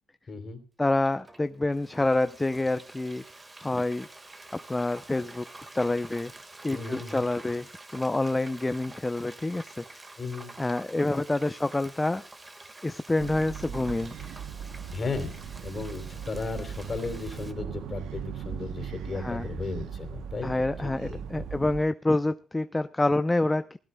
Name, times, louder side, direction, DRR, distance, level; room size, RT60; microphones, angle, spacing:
voice 1, 0.3-0.6 6.7-7.3 10.2-10.5 14.9-15.3 15.6-20.5 21.0-21.5, left 3 dB, 35° left, 3.3 m, -35 dB
voice 2, 0.8-3.2 3.6-4.1 4.5-5.5 5.7-6.3 6.6-9.8 10.6-12.3 12.8-14.1 19.1-19.5 20.4-23.8, left 2 dB, 15° left, 0.5 m, -27 dB
Frying (food), 0.8-17.5, right 2 dB, 20° right, 1.6 m, -48 dB
sound 1, 13.2-21.8, right 8 dB, 80° right, 0.8 m, -39 dB
19.5 x 16.0 x 2.2 m
cardioid pair, 90°, 0 cm